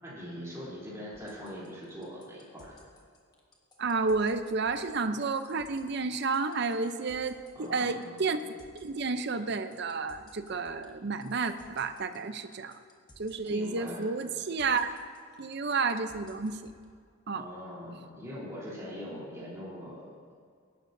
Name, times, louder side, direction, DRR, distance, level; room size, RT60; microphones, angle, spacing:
voice 1, 0.0-2.7 6.7-6.8 7.5-8.1 13.5-14.1 17.3-20.3, equal, 15° right, -8 dB, 3.3 m, -42 dB
sound 1, 1.1-16.8, left 1 dB, 20° left, 1.3 m, -57 dB
voice 2, 3.8-12.7 13.2-14.9 15.4-16.7 17.3-17.5, right 4 dB, 50° right, 10 dB, 0.6 m, -31 dB
18.0 x 11.5 x 2.7 m, 2.2 s
head